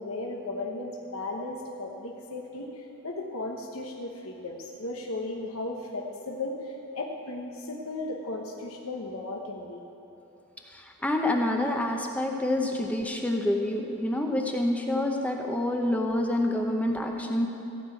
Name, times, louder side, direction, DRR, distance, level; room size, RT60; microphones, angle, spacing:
voice 1, 0.0-9.8, left 2 dB, 75° left, 0 dB, 1.1 m, -36 dB
voice 2, 10.7-17.5, left 1 dB, 5° left, 1 dB, 0.8 m, -27 dB
15.0 x 6.0 x 8.3 m, 3.0 s
head